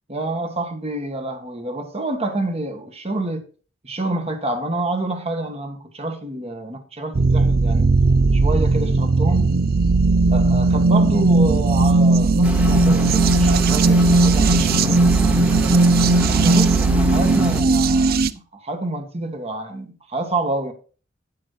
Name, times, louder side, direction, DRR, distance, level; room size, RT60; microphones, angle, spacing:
voice 1, 0.1-3.4 3.8-7.9 8.3-9.5 10.3-15.8 16.3-20.7, right 2 dB, 30° right, 1.6 m, -28 dB
sound 1, 7.2-18.3, right 3 dB, 50° right, 0.5 m, -17 dB
sound 2, 12.4-17.6, equal, 5° right, 0.8 m, -27 dB
9.3 x 7.5 x 4.5 m
head